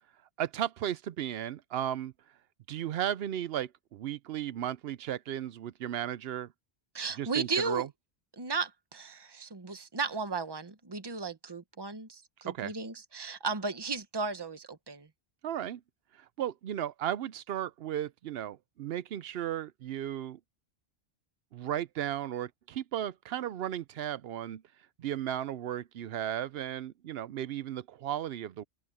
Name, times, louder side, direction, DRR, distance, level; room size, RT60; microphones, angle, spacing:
voice 1, 0.4-2.1 2.7-6.5 7.2-7.9 12.5-12.7 15.4-15.8 16.4-20.4 21.5-24.6 25.0-28.6, right 11 dB, 70° right, 0.8 m, -35 dB
voice 2, 6.9-7.9 8.4-15.1, right 4 dB, 25° right, 1.1 m, -35 dB
open air
omnidirectional pair, 1.1 m